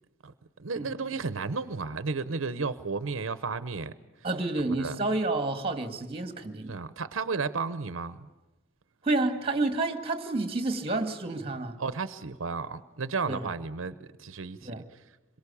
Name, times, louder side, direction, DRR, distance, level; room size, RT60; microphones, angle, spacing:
voice 1, 0.6-3.9 4.8-5.0 6.7-8.2 11.8-14.8, right 4 dB, 85° right, 0.8 m, -33 dB
voice 2, 4.2-6.8 9.0-11.8 13.3-13.5 14.6-14.8, right 2 dB, 30° right, 2.0 m, -29 dB
26.0 x 22.5 x 8.5 m
head